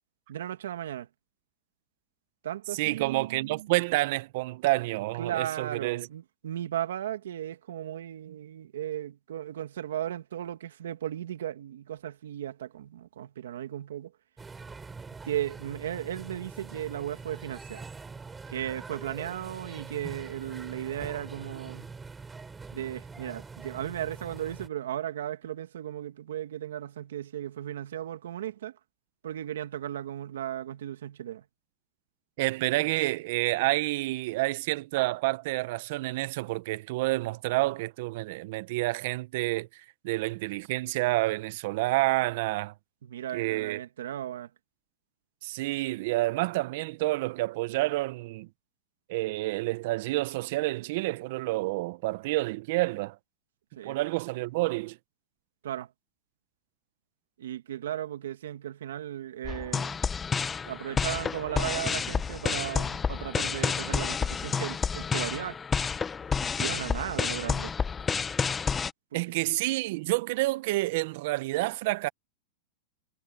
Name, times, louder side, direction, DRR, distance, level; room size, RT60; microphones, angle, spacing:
voice 1, 0.3-1.1 2.4-3.7 5.2-14.1 15.2-17.8 18.5-21.9 22.7-28.8 29.2-31.4 43.0-44.5 53.8-54.0 55.6-55.9 57.4-60.0 60.7-65.6 66.4-67.7 69.1-69.5, right 11 dB, 80° right, 2.1 m, -36 dB
voice 2, 2.7-6.1 32.4-42.7 43.3-43.8 45.4-48.5 49.1-53.2 53.8-55.0 69.1-72.1, right 20 dB, 60° right, 0.8 m, -29 dB
sound 1, 14.4-24.7, right 4 dB, 15° right, 7.8 m, -44 dB
sound 2, 59.4-68.9, left 6 dB, 15° left, 0.8 m, -30 dB
hypercardioid pair, 130°, 0 cm